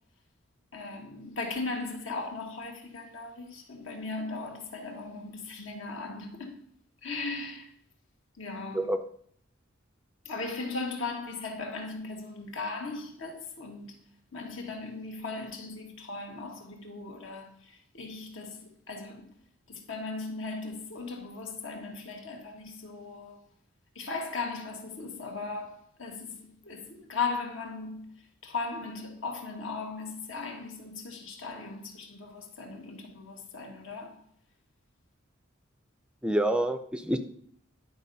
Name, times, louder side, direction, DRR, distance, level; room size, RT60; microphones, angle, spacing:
voice 1, 0.7-6.6 7.0-7.7 8.4-8.9 10.3-14.0 14.3-19.3 19.7-23.4 24.0-28.1 28.4-34.2, left 3 dB, 70° left, 1.7 m, -38 dB
voice 2, 36.2-37.2, right 1 dB, 5° right, 0.4 m, -27 dB
10.5 x 4.4 x 5.4 m
head